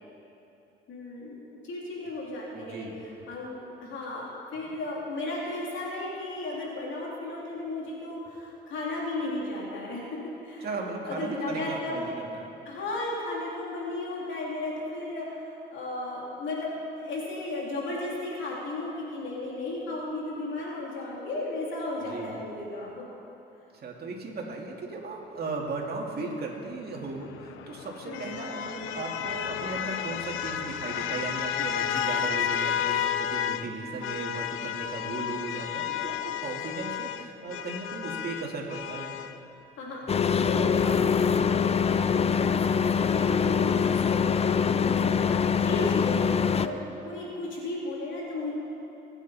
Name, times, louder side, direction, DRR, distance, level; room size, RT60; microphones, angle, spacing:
voice 1, 0.9-10.7 11.0-12.0 12.6-23.0 28.1-28.4 39.8-48.5, left 2 dB, 75° left, -4 dB, 3.0 m, -35 dB
voice 2, 2.5-3.0 10.6-12.5 22.0-22.3 23.7-39.1, right 3 dB, 55° right, -1 dB, 2.3 m, -36 dB
sound 1, 27.0-33.7 34.0-39.4, left 9 dB, 90° left, 0.6 m, -32 dB
sound 2, 40.1-46.7, left 6 dB, 30° left, 0.5 m, -24 dB
21.5 x 8.4 x 4.2 m, 2.9 s
cardioid pair, 90°, 20 cm